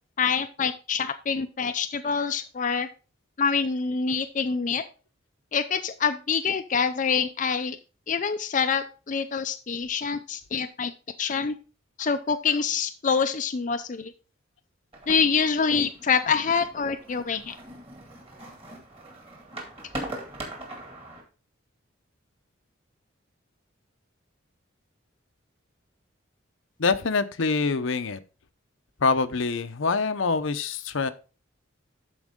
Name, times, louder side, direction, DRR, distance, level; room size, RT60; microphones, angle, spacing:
voice 1, 0.2-2.9 3.4-4.8 5.5-7.8 8.1-10.9 11.2-11.6 12.0-14.1 15.1-17.5, left 6 dB, 40° left, 8 dB, 0.4 m, -26 dB
sound 1, 14.9-21.2, right 1 dB, 30° right, 2.1 m, -41 dB
voice 2, 26.8-28.2 29.0-31.1, left 4 dB, 70° left, 11 dB, 0.7 m, -25 dB
12.5 x 4.7 x 3.7 m, 0.34 s
head